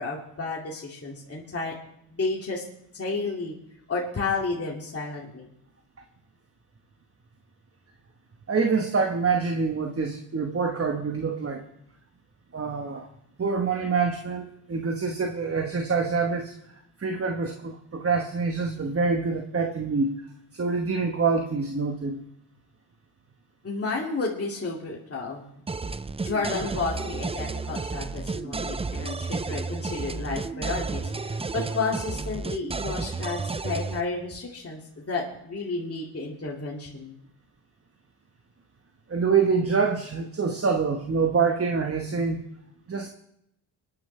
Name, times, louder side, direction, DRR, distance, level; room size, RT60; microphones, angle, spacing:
voice 1, 0.0-1.8 2.1-2.6 2.9-3.5 3.9-5.5 23.6-25.4 26.2-37.2, left 3 dB, 30° left, -3 dB, 2.4 m, -31 dB
voice 2, 8.5-11.7 12.5-13.1 13.4-16.5 17.0-20.1 20.5-22.2 39.1-42.4 42.9-43.1, right 5 dB, 30° right, 4 dB, 1.3 m, -26 dB
sound 1, 25.7-34.0, right 4 dB, 15° right, 0.4 m, -32 dB
23.5 x 10.0 x 3.3 m, 0.79 s
cardioid pair, 70°, 49 cm